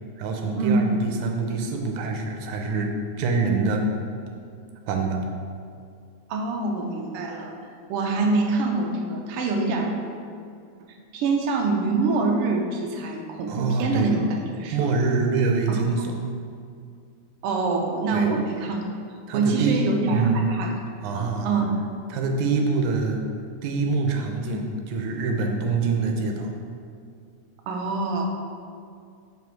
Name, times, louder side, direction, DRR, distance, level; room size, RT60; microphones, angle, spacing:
voice 1, 0.2-2.9 3.2-3.9 4.9-5.2 13.5-14.1 14.7-16.2 18.1-18.3 19.3-19.8 20.1-20.4 21.0-21.5 22.1-23.2 23.6-26.5, right 4 dB, 90° right, 3 dB, 2.2 m, -25 dB
voice 2, 6.3-7.6 7.9-9.9 11.1-14.9 15.7-15.8 17.4-18.8 19.3-20.7 21.1-21.8 27.7-28.3, right 3 dB, 75° right, 1 dB, 1.4 m, -25 dB
6.2 x 5.3 x 4.6 m, 2.3 s
omnidirectional pair, 3.3 m